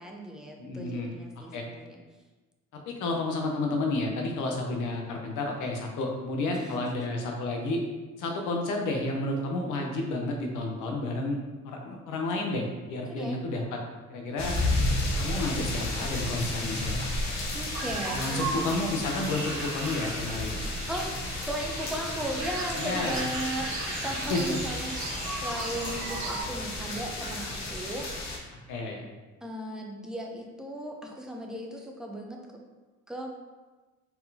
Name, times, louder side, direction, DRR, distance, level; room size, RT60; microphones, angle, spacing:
voice 1, 0.0-2.0 6.5-7.0 13.1-13.4 17.5-18.7 20.9-24.9 25.3-28.1 29.4-32.6 33.1-33.3, right 1 dB, ahead, 0 dB, 0.7 m, -36 dB
voice 2, 0.6-1.1 1.5-1.6 2.7-7.8 8.2-11.4 11.6-13.8 14.1-14.6 15.2-17.1 18.1-20.6 22.8-23.2 24.0-24.4 28.5-29.0, left 2 dB, 85° left, 1 dB, 0.9 m, -31 dB
sound 1, 14.4-28.4, left 2 dB, 65° left, 1.0 m, -33 dB
sound 2, 17.7-26.4, right 3 dB, 70° right, 1.0 m, -37 dB
sound 3, 20.3-27.9, right 2 dB, 25° right, 1.0 m, -49 dB
4.4 x 3.7 x 2.8 m, 1.2 s
cardioid pair, 90°, 30 cm